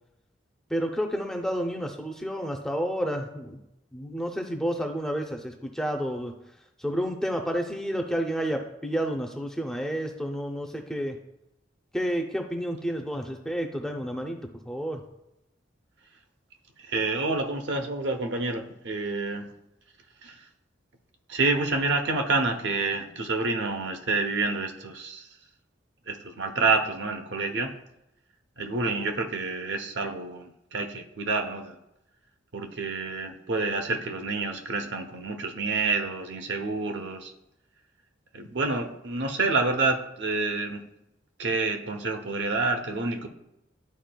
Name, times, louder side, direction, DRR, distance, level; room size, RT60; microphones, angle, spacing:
voice 1, 0.7-3.6 3.9-6.3 6.8-11.2 11.9-14.4 14.7-15.0, equal, 5° left, 3 dB, 0.5 m, -30 dB
voice 2, 16.8-19.5 20.2-20.3 21.3-25.3 26.1-27.7 28.6-31.7 32.5-37.3 38.3-40.8 41.4-43.3, right 3 dB, 65° right, 5 dB, 0.7 m, -28 dB
11.0 x 4.2 x 2.2 m, 0.87 s
head